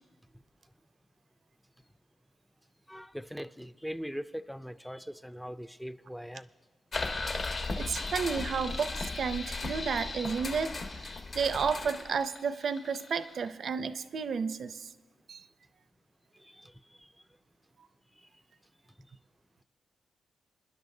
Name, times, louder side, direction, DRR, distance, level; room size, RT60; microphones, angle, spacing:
voice 1, 2.9-6.5 16.4-17.1, equal, ahead, 0.4 m, -41 dB
sound 1, 6.9-13.5, left 3 dB, 55° left, 1.3 m, -36 dB
voice 2, 7.8-10.8 11.3-14.9 15.3-15.4, right 6 dB, 65° right, 0.5 m, -32 dB
27.5 x 10.5 x 2.7 m
cardioid pair, 90°, 0 cm